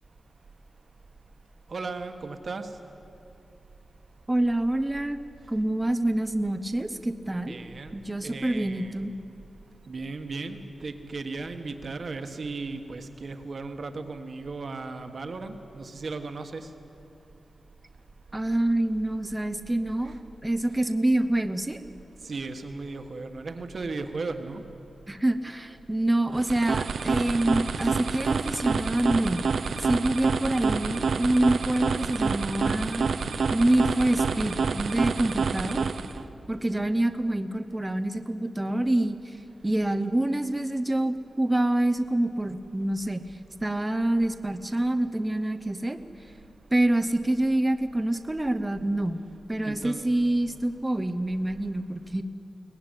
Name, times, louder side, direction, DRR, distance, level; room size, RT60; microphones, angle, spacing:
voice 1, 1.7-2.7 7.4-8.0 8.2-9.0 9.9-16.7 20.0-20.1 22.2-24.6 49.6-50.0, right 3 dB, 45° right, 7 dB, 1.5 m, -36 dB
voice 2, 4.3-5.2 5.5-7.6 7.9-9.1 18.3-20.1 20.4-21.8 25.1-29.4 29.8-33.1 33.5-35.9 36.5-39.2 39.6-43.2 43.6-46.0 46.7-49.2 49.5-52.2, right 1 dB, 15° right, 8 dB, 0.8 m, -26 dB
sound 1, 26.3-36.2, right 5 dB, 75° right, 0.9 m, -28 dB
sound 2, 27.7-27.9 28.2-28.4 28.7-28.9 29.2-29.4 29.7-29.9 30.2-30.4 30.7-30.9 31.2-31.4 31.7-31.9 32.2-32.4 32.7-32.9 33.2-33.4 33.7-33.9 34.2-34.4 34.7-34.9, left 6 dB, 60° left, 0.7 m, -45 dB
23.0 x 19.0 x 9.9 m, 2.8 s
wide cardioid pair, 175°, 0 cm